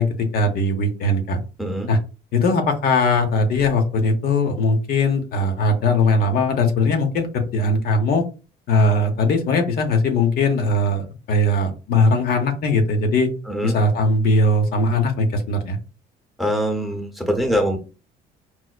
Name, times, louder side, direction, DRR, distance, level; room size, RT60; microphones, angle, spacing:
voice 1, 0.0-1.4 1.9-2.0 2.3-8.2 8.7-13.3 13.6-15.8, left 2 dB, 65° left, 4 dB, 0.8 m, -20 dB
voice 2, 1.6-1.9 13.5-13.8 16.4-17.8, equal, ahead, 5 dB, 0.7 m, -23 dB
4.6 x 2.0 x 2.3 m, 0.32 s
cardioid pair, 110°, 17 cm